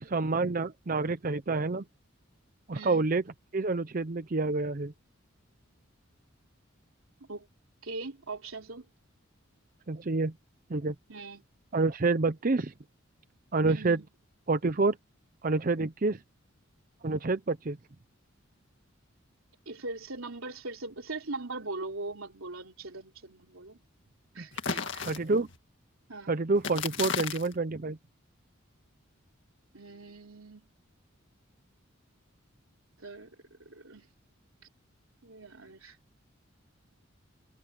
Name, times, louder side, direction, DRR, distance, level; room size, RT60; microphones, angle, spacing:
voice 1, 0.0-1.8 2.7-3.2 3.5-4.9 9.9-10.3 10.7-10.9 11.7-12.7 13.5-14.0 14.5-15.0 15.4-16.2 17.0-17.8 25.0-25.5 26.3-28.0, right 3 dB, 40° right, 0.6 m, -28 dB
voice 2, 2.7-3.1 7.3-7.5 7.8-8.8 11.1-11.4 13.6-14.0 19.6-23.8 24.3-25.1 26.1-26.3 29.7-30.7 33.0-34.1 35.2-36.0, right 3 dB, 90° right, 3.3 m, -41 dB
sound 1, 24.5-25.6 26.6-27.6, left 5 dB, 60° left, 2.1 m, -34 dB
head